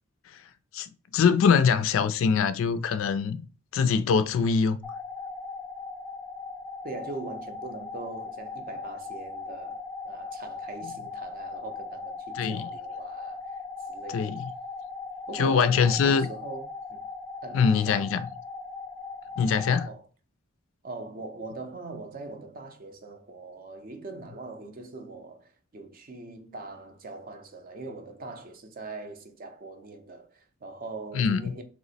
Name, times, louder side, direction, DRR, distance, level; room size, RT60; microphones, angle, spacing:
voice 1, 0.7-3.5 3.7-4.8 12.4-12.7 14.1-14.5 15.3-16.3 17.5-18.2 19.4-19.9 31.1-31.5, left 6 dB, 65° left, 0.3 m, -23 dB
sound 1, 4.8-19.9, left 4 dB, 10° left, 0.6 m, -39 dB
voice 2, 6.8-13.6 13.9-14.4 15.3-17.0 17.4-18.1 19.8-20.1 20.8-31.6, right 3 dB, 40° right, 0.5 m, -41 dB
2.9 x 2.0 x 4.0 m
head